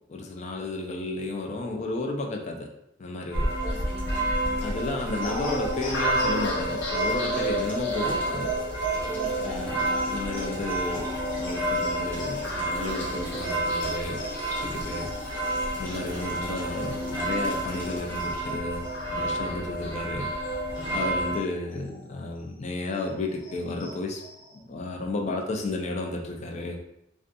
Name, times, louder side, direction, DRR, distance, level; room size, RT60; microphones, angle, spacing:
voice 1, 0.1-2.7 3.0-3.5 4.6-8.5 9.4-11.1 11.4-14.2 14.6-15.1 15.8-18.8 19.1-20.3 20.9-24.2 24.6-26.8, left 2 dB, 35° left, 1 dB, 0.3 m, -32 dB
sound 1, 3.3-21.4, right 1 dB, 65° left, 1.0 m, -30 dB
sound 2, 3.5-18.6, equal, 15° left, 0.7 m, -43 dB
voice 2, 3.6-4.6 9.0-10.0 19.8-20.0, right 3 dB, 35° right, -1 dB, 0.4 m, -43 dB
sound 3, 5.2-22.1 22.5-22.6 23.0-24.6, right 1 dB, 90° left, 0.6 m, -37 dB
2.5 x 2.2 x 2.5 m, 0.80 s
head